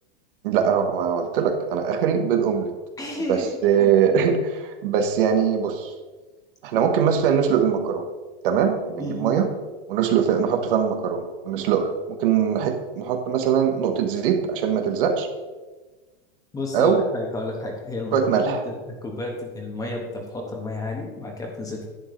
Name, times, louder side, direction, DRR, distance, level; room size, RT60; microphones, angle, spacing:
voice 1, 0.4-2.7 3.3-5.9 6.6-8.1 8.4-9.5 9.9-15.3 16.7-17.1 18.1-18.6, right 7 dB, 60° right, 5 dB, 1.3 m, -22 dB
voice 2, 3.0-3.5 3.8-3.9 9.0-9.3 16.5-21.9, left 2 dB, 10° left, 1 dB, 1.3 m, -31 dB
11.0 x 8.7 x 3.2 m, 1.2 s
supercardioid pair, 160°, 30 cm